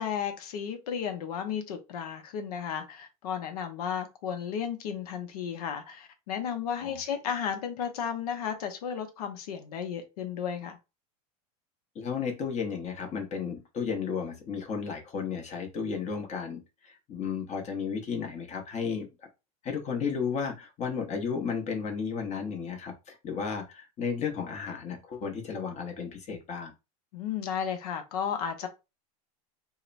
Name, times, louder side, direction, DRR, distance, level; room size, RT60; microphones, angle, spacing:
voice 1, 0.0-10.8 27.1-28.7, left 8 dB, 75° left, 0.7 m, -33 dB
voice 2, 11.9-19.1 19.6-26.7, left 6 dB, 35° left, 0.8 m, -33 dB
2.8 x 2.1 x 2.5 m
hypercardioid pair, 105°, 20 cm